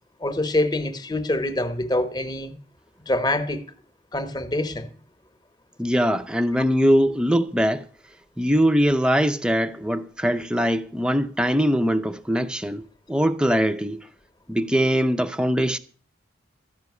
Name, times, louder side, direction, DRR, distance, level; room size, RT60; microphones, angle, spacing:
voice 1, 0.2-2.5 3.1-3.7 4.1-4.9, left 1 dB, 20° left, 1.0 m, -25 dB
voice 2, 5.8-7.9 8.4-12.8 13.1-14.1 14.5-15.8, equal, 5° right, 0.5 m, -22 dB
13.5 x 5.6 x 9.5 m
head